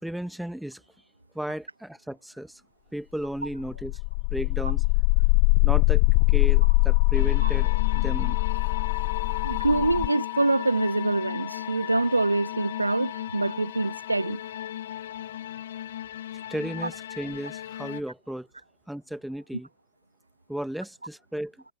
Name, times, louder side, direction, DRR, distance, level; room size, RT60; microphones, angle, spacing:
voice 1, 0.0-0.8 1.3-2.6 2.9-4.0 4.3-4.8 5.6-8.4 16.5-18.5 18.9-19.7 20.5-21.5, right 1 dB, ahead, 2.0 m, -34 dB
sound 1, 3.5-13.4, left 40 dB or more, 45° left, 1.0 m, -24 dB
sound 2, 7.1-18.0, left 11 dB, 60° left, 1.3 m, -38 dB
voice 2, 9.4-14.4, right 2 dB, 85° right, 0.5 m, -25 dB
figure-of-eight pair, 90°, 0 cm